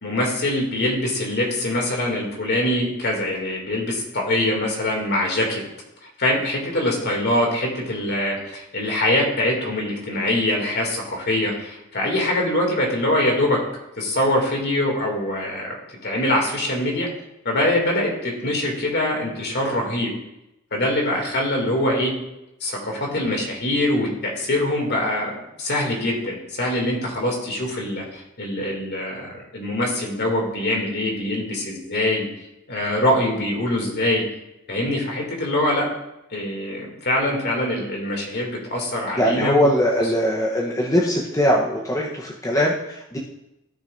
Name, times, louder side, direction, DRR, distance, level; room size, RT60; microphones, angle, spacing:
voice 1, 0.0-5.6 6.2-13.6 14.0-15.8 16.0-17.1 17.4-20.1 20.7-22.1 22.6-25.3 25.6-32.3 32.7-34.2 34.7-35.8 36.3-39.7, left 1 dB, 55° left, -1 dB, 2.6 m, -23 dB
voice 2, 39.2-43.2, equal, 15° left, -3 dB, 1.0 m, -21 dB
16.5 x 6.2 x 2.6 m, 0.91 s
head